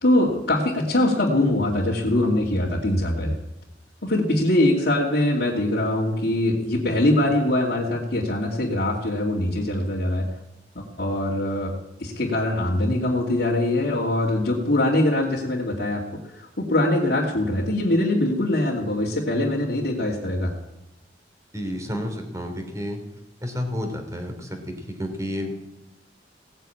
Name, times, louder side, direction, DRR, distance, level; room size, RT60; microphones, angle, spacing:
voice 1, 0.0-3.4 4.0-10.3 10.7-11.7 12.0-20.5, left 1 dB, 60° left, -5 dB, 2.5 m, -23 dB
voice 2, 21.5-23.0 23.4-25.5, equal, 20° right, 5 dB, 3.0 m, -30 dB
17.5 x 9.1 x 8.6 m, 0.93 s
head